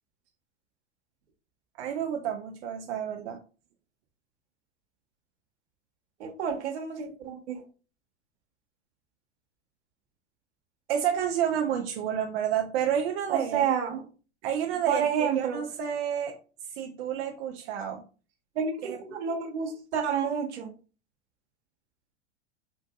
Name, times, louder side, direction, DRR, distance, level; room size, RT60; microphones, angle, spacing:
voice 1, 1.8-3.4 10.9-13.6 14.4-16.4 16.8-18.0 18.8-19.0, right 9 dB, 60° right, 4 dB, 0.5 m, -30 dB
voice 2, 6.2-7.6 13.3-14.0 14.9-15.6 18.6-20.7, right 7 dB, 75° right, 3 dB, 1.0 m, -29 dB
3.6 x 2.5 x 2.3 m, 0.36 s
hypercardioid pair, 105°, 34 cm